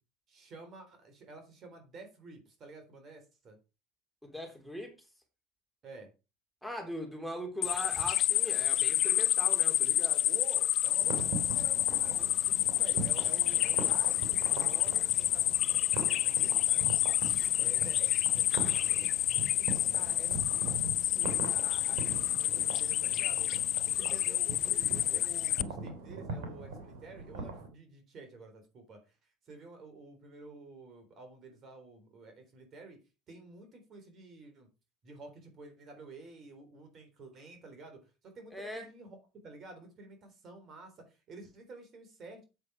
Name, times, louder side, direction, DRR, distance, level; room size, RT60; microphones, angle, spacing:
voice 1, 0.3-3.6 5.8-6.1 10.3-17.1 17.6-19.1 19.4-33.0 33.3-34.7 35.0-39.2 39.4-42.4, right 3 dB, 45° right, 6 dB, 3.7 m, -51 dB
voice 2, 4.2-4.9 6.6-10.3 38.5-38.8, equal, ahead, 2 dB, 3.4 m, -40 dB
sound 1, 7.6-25.6, left 12 dB, 50° left, 0.5 m, -29 dB
sound 2, 11.0-27.7, right 3 dB, 75° right, 3.0 m, -41 dB
8.1 x 7.4 x 4.7 m, 0.29 s
hypercardioid pair, 75°, 0 cm